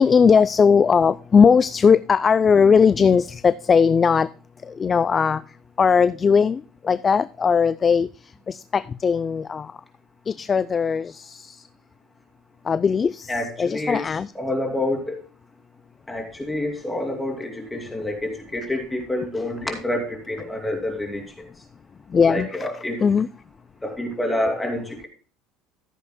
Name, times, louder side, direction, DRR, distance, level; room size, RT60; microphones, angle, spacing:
voice 1, 0.0-4.3 4.8-5.4 5.8-8.1 8.5-9.7 10.3-11.6 12.7-13.3 13.6-14.3 22.1-22.7 23.0-23.3, left 6 dB, 25° left, 16 dB, 0.4 m, -18 dB
voice 2, 13.3-14.1 14.3-15.2 16.1-21.5 22.3-23.0 23.8-25.1, left 1 dB, 10° left, 3 dB, 2.6 m, -28 dB
14.5 x 8.2 x 2.2 m, 0.38 s
supercardioid pair, 120°, 0 cm